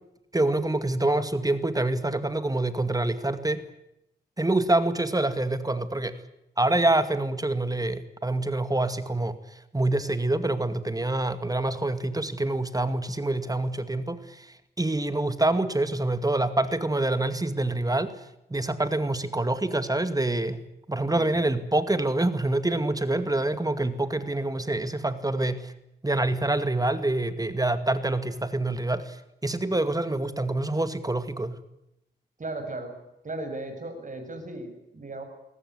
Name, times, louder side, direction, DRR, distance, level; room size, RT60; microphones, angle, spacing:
voice 1, 0.3-3.6 4.4-6.2 6.6-9.4 9.7-18.2 18.5-20.6 20.9-25.7 26.0-29.2 29.4-31.6, right 2 dB, 20° right, 11 dB, 2.2 m, -26 dB
voice 2, 32.4-32.9 33.2-35.2, right 2 dB, 45° right, 6 dB, 7.7 m, -36 dB
21.5 x 19.5 x 9.8 m, 0.83 s
cardioid pair, 70°, 18 cm